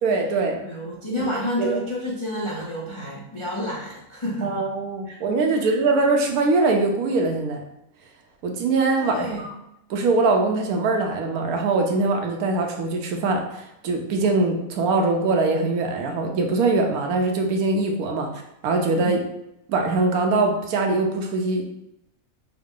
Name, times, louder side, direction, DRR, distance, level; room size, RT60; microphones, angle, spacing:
voice 1, 0.0-0.6 1.2-1.3 1.6-1.8 4.4-7.6 8.4-9.5 9.9-19.2 19.7-21.7, right 3 dB, 80° right, 3 dB, 1.1 m, -22 dB
voice 2, 0.6-4.6 5.1-5.2 5.5-5.7 9.0-9.4 18.9-19.2, equal, 45° left, -5 dB, 0.4 m, -30 dB
4.6 x 2.1 x 3.7 m, 0.83 s
omnidirectional pair, 1.5 m